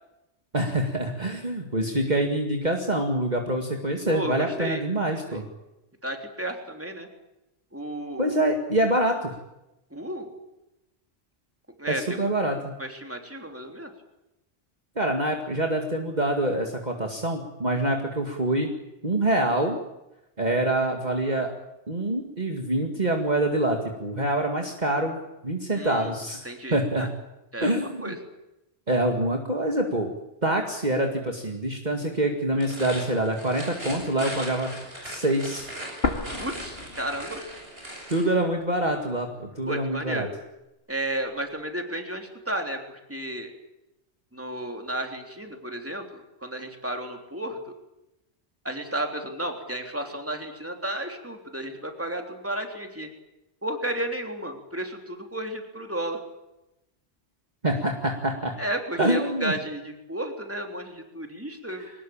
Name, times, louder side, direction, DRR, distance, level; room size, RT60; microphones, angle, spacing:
voice 1, 0.5-5.5 8.2-9.3 11.9-12.7 15.0-18.7 19.0-19.8 20.4-21.5 21.9-25.2 25.4-27.1 27.6-28.1 28.9-30.1 30.4-34.7 35.0-35.7 38.1-40.3 57.6-58.5 59.0-59.5, right 1 dB, 40° right, 2 dB, 2.3 m, -25 dB
voice 2, 4.1-4.8 5.1-5.4 6.0-7.1 7.7-8.4 9.9-10.3 11.8-12.3 12.8-13.9 25.7-26.1 26.4-27.1 27.5-28.2 36.4-37.4 39.7-40.3 40.9-43.5 44.3-47.7 48.6-53.1 53.6-56.2 58.6-61.9, right 1 dB, 10° right, 4 dB, 3.4 m, -33 dB
sound 1, 32.5-38.3, right 1 dB, 60° right, 7.5 m, -39 dB
sound 2, 36.0-38.0 38.3-38.4 39.1-40.0, left 3 dB, 60° left, 2.3 m, -32 dB
22.5 x 20.0 x 8.7 m, 0.91 s
omnidirectional pair, 1.2 m